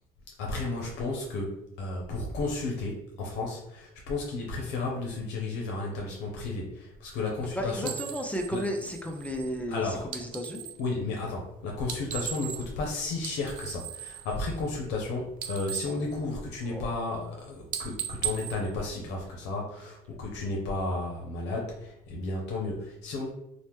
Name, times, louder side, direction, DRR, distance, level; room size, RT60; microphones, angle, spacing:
voice 1, 0.4-7.9 8.5-8.6 9.7-10.1 10.8-23.3, left 3 dB, 85° left, -1 dB, 0.6 m, -33 dB
voice 2, 7.6-10.7 16.7-16.9, equal, 10° left, 2 dB, 0.4 m, -33 dB
sound 1, 7.8-10.8 11.8-12.9 13.1-15.0 15.3-16.8 17.2-17.4 17.7-19.5, right 10 dB, 55° right, 0.4 m, -38 dB
2.8 x 2.0 x 3.4 m, 0.84 s
cardioid pair, 110°, 17 cm